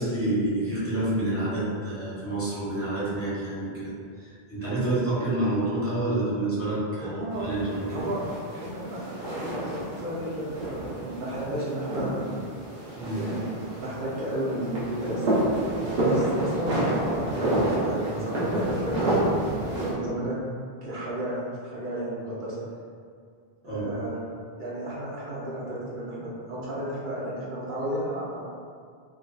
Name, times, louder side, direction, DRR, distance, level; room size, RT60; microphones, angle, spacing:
voice 1, 0.0-3.9 4.5-7.1 7.4-8.1 12.9-13.3 23.7-24.1, right 2 dB, 15° left, -10 dB, 0.6 m, -28 dB
voice 2, 7.0-7.5 7.9-12.4 13.0-15.2 15.5-15.6 15.9-19.2 19.9-20.4 20.8-22.6 23.6-24.2 24.6-28.4, right 1 dB, 55° right, -6 dB, 0.8 m, -33 dB
sound 1, 7.3-19.9, right 1 dB, 80° right, 1.0 m, -29 dB
2.3 x 2.3 x 2.2 m, 2.2 s
omnidirectional pair, 1.0 m